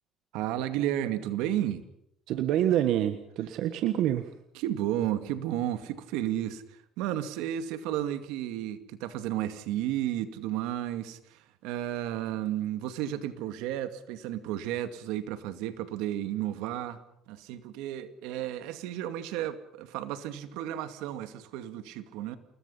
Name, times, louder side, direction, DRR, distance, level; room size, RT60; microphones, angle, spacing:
voice 1, 0.3-1.8 4.5-17.0 17.3-22.4, right 12 dB, 85° right, 10 dB, 2.3 m, -33 dB
voice 2, 2.3-4.3, right 11 dB, 70° right, 9 dB, 1.6 m, -27 dB
29.0 x 20.5 x 5.7 m, 0.75 s
cardioid pair, 120°, 0 cm